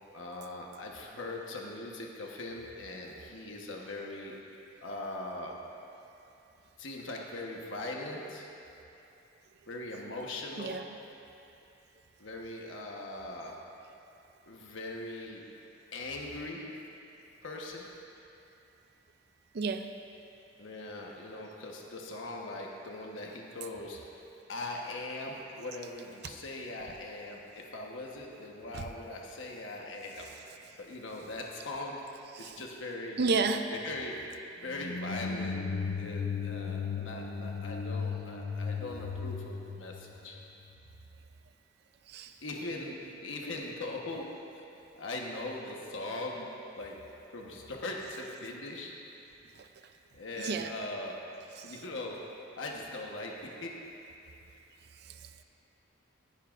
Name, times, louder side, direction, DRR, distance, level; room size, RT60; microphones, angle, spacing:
voice 1, 0.1-4.3 4.8-5.6 6.8-8.5 9.7-10.8 12.2-13.6 14.5-15.5 15.9-16.7 17.4-17.9 20.6-24.2 24.5-30.3 30.8-32.0 32.4-33.3 33.7-34.2 34.6-35.6 36.0-40.4 42.4-44.3 44.5-44.6 45.0-46.5 46.8-47.0 47.3-48.9 50.1-51.2 51.6-52.2 52.6-53.7, left 2 dB, 75° left, -1 dB, 1.2 m, -40 dB
voice 2, 19.5-19.9 28.7-28.8 32.3-32.6 33.2-33.6 42.1-42.3 49.6-49.7 50.4-50.7 51.6-51.7, right 4 dB, 55° right, 7 dB, 0.5 m, -31 dB
sound 1, 34.7-40.7, left 5 dB, 50° left, 0.5 m, -36 dB
19.5 x 11.5 x 2.5 m, 2.8 s
head